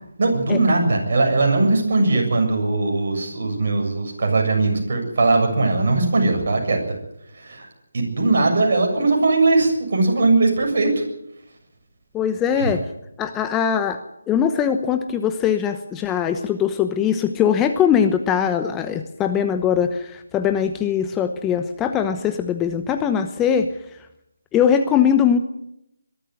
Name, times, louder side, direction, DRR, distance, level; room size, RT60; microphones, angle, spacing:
voice 1, 0.2-6.8 7.3-7.7 7.9-11.0 12.6-12.7, right 3 dB, 50° right, 2 dB, 7.3 m, -19 dB
voice 2, 12.1-12.8 13.2-14.0 14.3-23.7 24.5-25.4, left 8 dB, 10° left, 8 dB, 0.9 m, -21 dB
22.5 x 13.0 x 9.6 m, 0.81 s
figure-of-eight pair, 155°, 0 cm